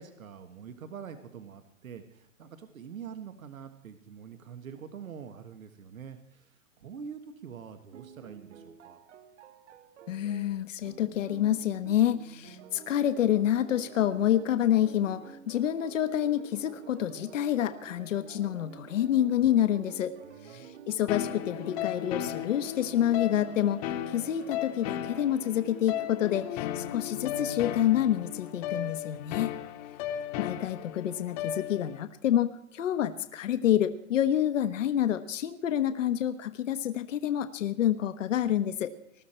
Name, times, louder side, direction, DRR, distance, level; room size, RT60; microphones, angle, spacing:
voice 1, 0.0-9.0 20.3-20.7 29.1-29.5, right 7 dB, 90° right, 8 dB, 1.6 m, -45 dB
sound 1, 7.9-26.6, right 7 dB, 60° right, 1.9 m, -49 dB
voice 2, 10.1-20.1 20.4-29.5 30.4-38.9, left 11 dB, 70° left, 10 dB, 1.1 m, -28 dB
sound 2, 21.1-32.0, left 11 dB, 30° left, 1.1 m, -36 dB
20.5 x 12.5 x 4.4 m, 0.72 s
hypercardioid pair, 155°, 40 cm